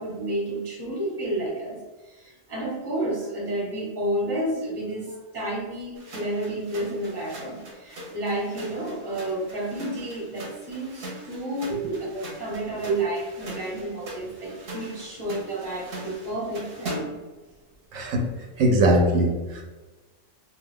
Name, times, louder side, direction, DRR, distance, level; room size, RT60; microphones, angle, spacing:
voice 1, 0.0-1.8 2.0-17.1, right 1 dB, 20° right, -4 dB, 0.9 m, -31 dB
sound 1, 6.0-17.3, right 1 dB, 55° right, 0.8 m, -41 dB
voice 2, 17.9-18.2 18.6-19.6, right 1 dB, 85° right, 2 dB, 1.0 m, -22 dB
2.6 x 2.2 x 3.5 m, 1.2 s
omnidirectional pair, 1.3 m